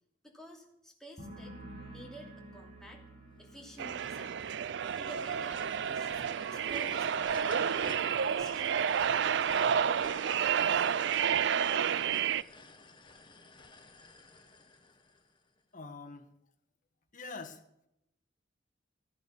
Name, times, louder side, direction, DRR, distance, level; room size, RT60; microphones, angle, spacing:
voice 1, 0.2-1.6 1.8-3.0 3.4-4.4 5.0-7.4 7.8-10.9, right 1 dB, 5° left, 0 dB, 2.9 m, -51 dB
sound 1, 1.2-8.6 8.9-9.4, right 1 dB, 30° right, 6.8 m, -53 dB
sound 2, 3.5-15.6, left 3 dB, 25° left, 1.3 m, -54 dB
sound 3, 3.8-12.4, right 8 dB, 65° right, 0.4 m, -30 dB
voice 2, 15.7-16.3 17.1-17.6, left 3 dB, 45° left, 5 dB, 1.5 m, -44 dB
14.0 x 10.5 x 7.1 m, 0.83 s
head